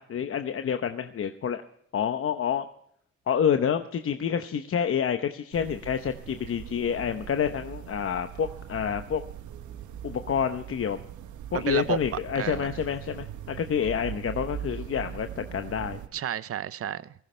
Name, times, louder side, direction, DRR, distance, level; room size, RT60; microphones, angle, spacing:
voice 1, 0.0-1.6 1.9-2.7 3.3-9.2 10.0-11.0 11.5-16.0, left 8 dB, 45° left, 0.9 m, -28 dB
sound 1, 5.5-16.1, right 10 dB, 75° right, 1.2 m, -41 dB
voice 2, 11.5-12.7 16.1-17.1, right 10 dB, 50° right, 0.7 m, -32 dB
18.0 x 15.0 x 3.3 m
cardioid pair, 90°, 30 cm